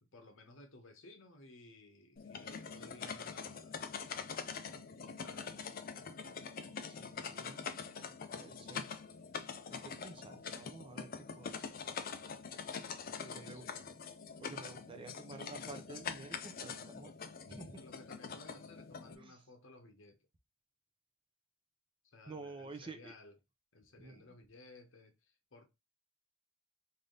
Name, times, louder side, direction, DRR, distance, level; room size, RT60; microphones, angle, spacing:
voice 1, 0.0-3.9 4.9-5.7 13.0-13.9 17.8-20.3 22.0-23.4 23.7-25.7, left 2 dB, 70° left, 0.9 m, -57 dB
sound 1, 2.2-19.2, left 6 dB, 45° left, 0.4 m, -44 dB
voice 2, 6.9-7.7 8.3-8.8 9.8-11.1 11.4-11.5 13.2-13.6 14.4-17.1 17.5-17.8 19.2-19.3 22.3-23.1 24.0-24.2, right 3 dB, 25° right, 0.5 m, -50 dB
3.4 x 2.7 x 3.7 m
head